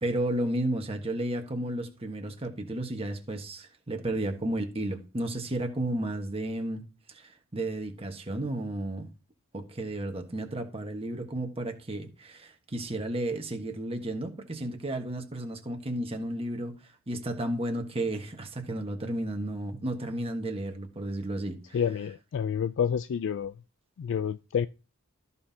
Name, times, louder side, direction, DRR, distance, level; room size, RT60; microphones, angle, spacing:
voice 1, 0.0-6.8 7.1-9.1 9.5-16.7 17.1-21.8, right 1 dB, 25° right, 1.3 m, -33 dB
voice 2, 21.7-23.5 24.0-24.7, left 7 dB, 60° left, 0.3 m, -29 dB
14.0 x 5.4 x 2.8 m
head